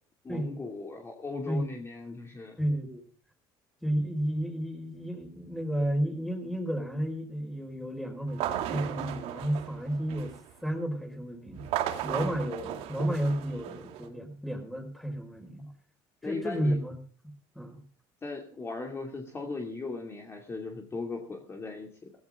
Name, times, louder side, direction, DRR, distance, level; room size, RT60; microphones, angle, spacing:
voice 1, 0.2-2.6 16.2-16.8 18.2-22.1, left 3 dB, 25° left, 2 dB, 2.7 m, -38 dB
voice 2, 2.6-3.0 3.8-11.7 12.0-15.7 16.2-16.9 17.2-17.8, right 1 dB, ahead, 5 dB, 5.0 m, -32 dB
sound 1, 8.3-10.5 11.5-14.1, right 11 dB, 70° right, 2.6 m, -35 dB
17.0 x 15.5 x 3.7 m, 0.40 s
cardioid pair, 115°, 11 cm